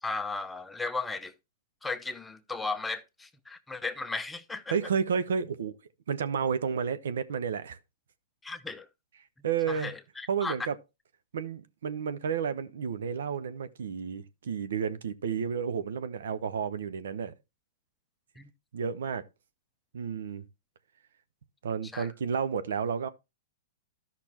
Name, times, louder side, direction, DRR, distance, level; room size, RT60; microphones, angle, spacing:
voice 1, 0.0-1.3 1.8-4.7 8.4-8.9 9.7-10.5 18.4-18.5 21.9-22.1, left 3 dB, 10° left, 0.7 m, -35 dB
voice 2, 4.7-5.8 6.1-7.8 9.4-9.9 10.3-10.8 11.3-17.3 18.7-19.2 19.9-20.4 21.6-23.1, right 6 dB, 70° right, 0.8 m, -31 dB
13.5 x 5.8 x 2.9 m
hypercardioid pair, 120°, 0 cm